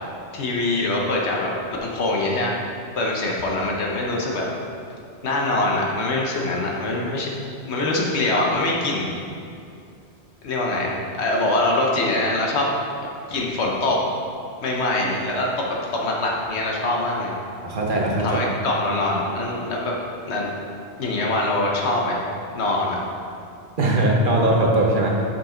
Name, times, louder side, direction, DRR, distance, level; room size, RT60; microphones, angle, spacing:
voice 1, 0.3-1.5 1.8-2.5 3.0-4.5 5.2-7.3 7.6-9.1 10.4-12.7 13.3-14.0 14.6-17.3 18.2-19.9 20.3-20.5 21.0-22.3 22.5-23.0, left 2 dB, 80° left, -2 dB, 1.2 m, -23 dB
voice 2, 17.6-18.3 23.8-25.1, right 1 dB, 50° right, -1 dB, 1.1 m, -20 dB
7.2 x 5.8 x 3.8 m, 2.4 s
omnidirectional pair, 1.1 m